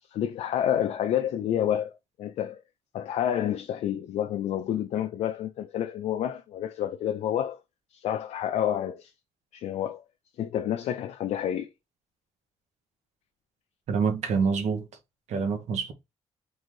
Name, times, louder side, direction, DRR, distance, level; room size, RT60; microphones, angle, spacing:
voice 1, 0.1-2.6 2.9-7.6 7.9-9.1 9.5-10.0 10.4-11.7, left 10 dB, 70° left, 0.4 m, -29 dB
voice 2, 13.9-14.9 15.3-15.9, right 5 dB, 80° right, 1.1 m, -26 dB
3.9 x 2.6 x 4.6 m
wide cardioid pair, 170°, 12 cm